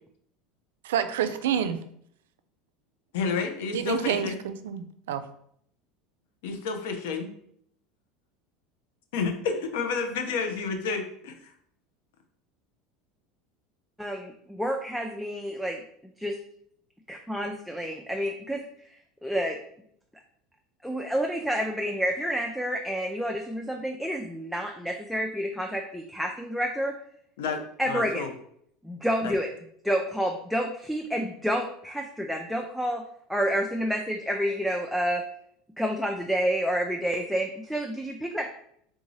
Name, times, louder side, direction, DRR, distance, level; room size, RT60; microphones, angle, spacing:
voice 1, 0.8-1.8 3.7-5.2, right 8 dB, 90° right, 0.3 m, -28 dB
voice 2, 3.1-4.4 6.4-7.3 9.1-11.5 27.4-28.3 29.2-29.3, left 5 dB, 80° left, 0.6 m, -30 dB
voice 3, 14.0-15.8 16.2-16.4 17.1-18.6 19.2-19.6 20.8-27.0 27.8-28.2 28.8-29.5 29.8-33.0 33.3-35.3 35.8-38.5, equal, ahead, 0.3 m, -29 dB
3.5 x 2.6 x 3.1 m
supercardioid pair, 110°, 0 cm